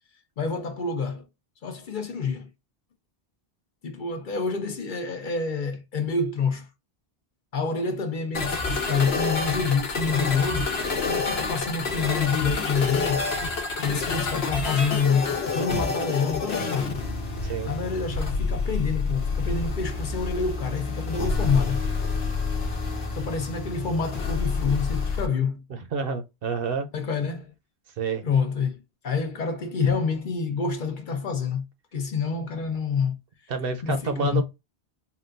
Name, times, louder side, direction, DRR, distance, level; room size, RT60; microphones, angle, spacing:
voice 1, 0.4-1.3 1.6-2.5 3.8-6.7 7.5-10.7 11.0-13.3 13.8-17.0 17.6-21.8 23.1-25.6 26.9-27.5 28.2-31.6 31.9-33.2 33.8-34.4, left 5 dB, 55° left, 0.7 m, -27 dB
sound 1, 8.3-25.3, left 4 dB, 75° left, 1.1 m, -28 dB
voice 2, 25.7-26.9 28.0-28.2 33.5-34.4, right 5 dB, 65° right, 0.9 m, -28 dB
3.7 x 2.3 x 2.4 m
omnidirectional pair, 1.1 m